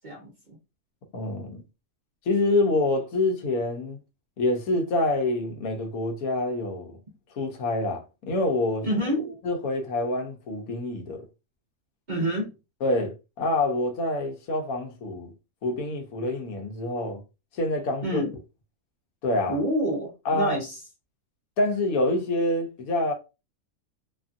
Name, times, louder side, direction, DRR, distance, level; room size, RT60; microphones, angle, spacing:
voice 1, 0.0-0.6 8.8-9.4 12.1-12.5 18.0-18.3 19.5-20.8, equal, 40° right, 0.7 m, -28 dB
voice 2, 1.1-1.6 2.3-4.0 4.4-7.0 7.3-8.9 9.4-11.2 12.8-15.3 15.6-17.2 17.5-18.2 19.2-19.6 20.2-20.6 21.6-23.1, left 2 dB, 80° left, 1.2 m, -26 dB
2.9 x 2.5 x 2.4 m
omnidirectional pair, 1.5 m